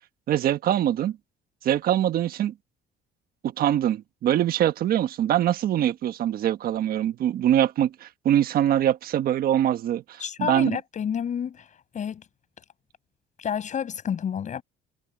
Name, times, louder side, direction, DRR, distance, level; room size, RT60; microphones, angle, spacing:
voice 1, 0.3-1.2 1.6-2.5 3.6-10.8, right 11 dB, 60° right, 1.3 m, -23 dB
voice 2, 10.2-11.7 11.9-12.3 13.4-14.6, left 8 dB, 45° left, 7.1 m, -29 dB
cardioid pair, 110°, 17 cm